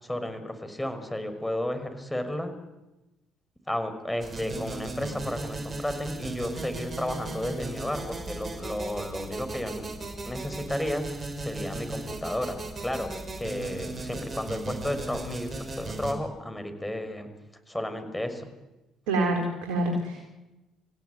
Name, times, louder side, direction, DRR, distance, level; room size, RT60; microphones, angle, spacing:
voice 1, 0.0-2.5 3.7-9.9 10.2-17.3 17.7-18.5, left 1 dB, 10° left, 8 dB, 5.9 m, -33 dB
sound 1, 4.2-16.1, right 2 dB, 35° right, 6.1 m, -37 dB
voice 2, 19.1-20.3, right 1 dB, 75° right, 2 dB, 4.2 m, -27 dB
28.5 x 16.5 x 9.6 m, 1.0 s
hypercardioid pair, 55°, 0 cm